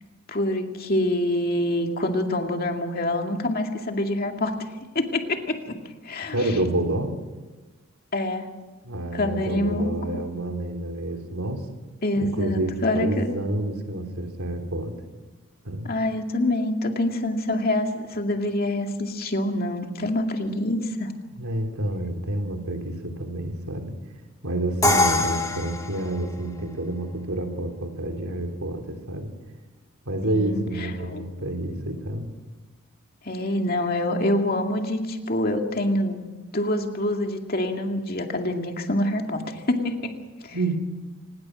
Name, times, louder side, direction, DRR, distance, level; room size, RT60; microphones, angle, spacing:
voice 1, 0.3-4.6 4.9-5.8 6.0-6.5 8.1-8.5 9.1-10.2 12.0-13.4 15.8-21.1 30.3-31.2 33.2-36.2 36.5-40.2 40.4-40.6, left 1 dB, 45° left, 3 dB, 2.3 m, -26 dB
voice 2, 6.3-7.1 8.8-11.6 12.2-14.9 15.6-15.9 21.4-23.9 24.4-29.3 30.0-32.3 40.5-40.8, right 1 dB, 80° right, 5 dB, 3.3 m, -28 dB
Crash cymbal, 24.8-26.7, left 2 dB, 15° left, 1.5 m, -24 dB
25.0 x 20.0 x 6.3 m, 1.2 s
head